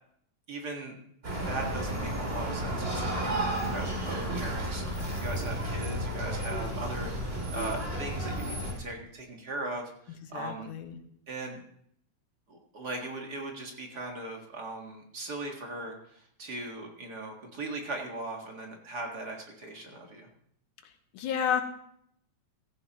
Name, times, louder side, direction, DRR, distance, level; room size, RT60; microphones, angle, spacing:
voice 1, 0.5-1.0 1.5-10.7 11.3-11.6 12.5-20.3, right 2 dB, 40° right, 1 dB, 1.8 m, -39 dB
sound 1, 1.2-8.7, right 1 dB, 20° right, 2.8 m, -32 dB
voice 2, 10.3-11.0 21.1-21.6, left 8 dB, 90° left, 6 dB, 2.6 m, -30 dB
15.5 x 14.0 x 3.0 m, 0.69 s
omnidirectional pair, 3.4 m